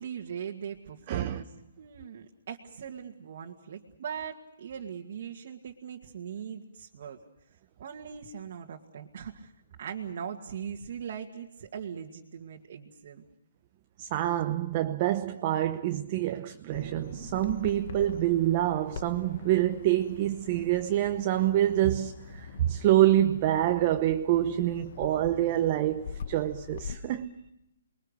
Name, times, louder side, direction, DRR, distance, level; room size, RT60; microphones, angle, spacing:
voice 1, 0.0-1.5 1.8-7.2 7.8-9.5 9.8-13.2, right 7 dB, 50° right, 2.1 m, -40 dB
voice 2, 1.1-1.4 14.0-27.3, right 13 dB, 30° right, 0.9 m, -26 dB
Bird vocalization bird call bird song, 16.7-26.9, left 6 dB, 45° left, 1.4 m, -44 dB
29.5 x 22.0 x 6.6 m
hypercardioid pair, 165°, 0 cm